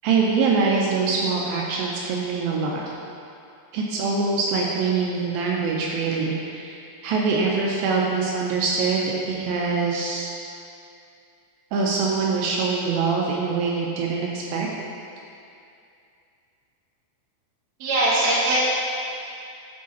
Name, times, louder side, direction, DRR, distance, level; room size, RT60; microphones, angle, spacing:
voice 1, 0.0-2.8 3.7-10.3 11.7-14.7, right 4 dB, 85° right, -2 dB, 2.4 m, -24 dB
voice 2, 17.8-18.6, right 1 dB, 65° right, -8 dB, 1.9 m, -20 dB
12.5 x 4.7 x 2.8 m, 2.5 s
omnidirectional pair, 4.3 m